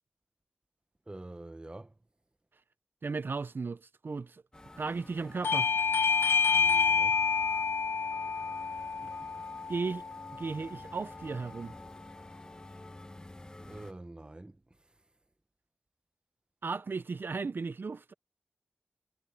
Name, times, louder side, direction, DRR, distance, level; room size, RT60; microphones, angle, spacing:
voice 1, 1.1-2.0 6.5-7.2 13.6-14.8, right 2 dB, 25° right, 1.0 m, -46 dB
voice 2, 3.0-4.4 4.8-5.7 9.7-10.0 10.3-11.7 16.6-18.1, right 4 dB, 65° right, 0.5 m, -35 dB
sound 1, 4.5-13.9, left 1 dB, 20° left, 1.4 m, -50 dB
Bell / Doorbell, 5.4-10.6, left 5 dB, 85° left, 0.4 m, -28 dB
wide cardioid pair, 70°, 4 cm